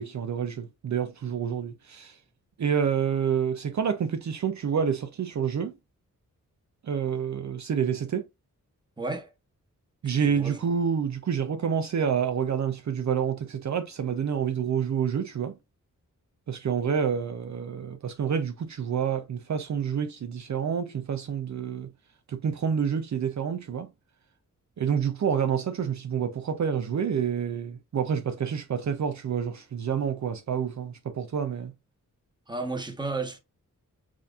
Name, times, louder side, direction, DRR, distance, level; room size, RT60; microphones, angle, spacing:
voice 1, 0.0-2.2 2.6-5.7 6.8-8.2 10.0-15.5 16.5-21.9 22.3-23.9 24.8-31.7, right 7 dB, 60° right, 0.6 m, -28 dB
voice 2, 9.0-9.3 10.0-10.6 32.5-33.4, right 3 dB, 15° right, 1.2 m, -33 dB
7.3 x 2.8 x 2.4 m
wide cardioid pair, 90°, 32 cm